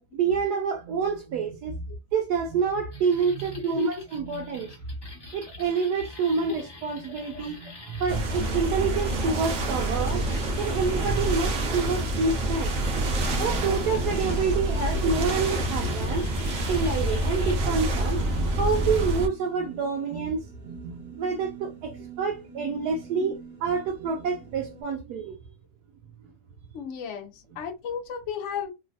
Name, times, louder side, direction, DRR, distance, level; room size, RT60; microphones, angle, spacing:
voice 1, 0.1-1.8 2.1-4.7 5.3-12.7 13.4-18.2 18.6-25.4, right 5 dB, 90° right, 1.2 m, -28 dB
sound 1, 2.9-17.6, left 2 dB, 20° left, 0.9 m, -47 dB
sound 2, 8.1-19.3, right 1 dB, 60° right, 1.1 m, -27 dB
sound 3, 8.4-24.8, right 3 dB, 35° right, 1.0 m, -47 dB
voice 2, 26.7-28.7, left 7 dB, 60° left, 0.8 m, -34 dB
3.1 x 2.1 x 2.5 m
omnidirectional pair, 1.7 m